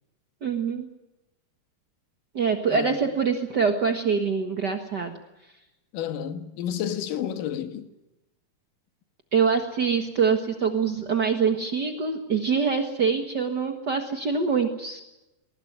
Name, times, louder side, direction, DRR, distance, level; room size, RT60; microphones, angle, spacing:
voice 1, 0.4-0.9 2.3-5.2 9.3-15.0, right 5 dB, 75° right, 0.9 m, -24 dB
voice 2, 2.7-3.0 5.9-7.9, left 9 dB, 65° left, 2.8 m, -31 dB
21.0 x 19.5 x 9.4 m
omnidirectional pair, 4.5 m